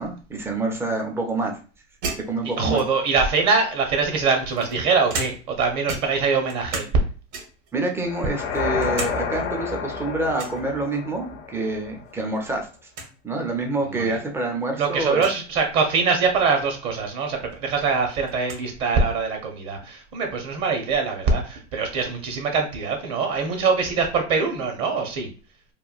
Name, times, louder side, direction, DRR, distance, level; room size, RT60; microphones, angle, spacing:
voice 1, 0.0-1.6 2.3-2.8 7.7-12.7 13.2-15.2, right 2 dB, 5° right, 2 dB, 0.3 m, -27 dB
sound 1, 2.0-3.2 4.0-5.6 5.9-7.0 7.3-7.7 8.2-9.2 9.5-9.6 10.4-10.6 12.1-12.4 12.7-12.8 12.9-13.1 13.9-14.0 15.1-15.4 17.1-17.2 17.5-18.7, right 3 dB, 65° right, 1.1 m, -34 dB
voice 2, 2.6-6.8 13.9-14.2 14.8-25.3, right 4 dB, 40° right, 4 dB, 0.7 m, -23 dB
sound 2, 8.0-12.1, left 6 dB, 80° left, 0.7 m, -30 dB
3.0 x 2.1 x 2.4 m, 0.37 s
hypercardioid pair, 100°, 39 cm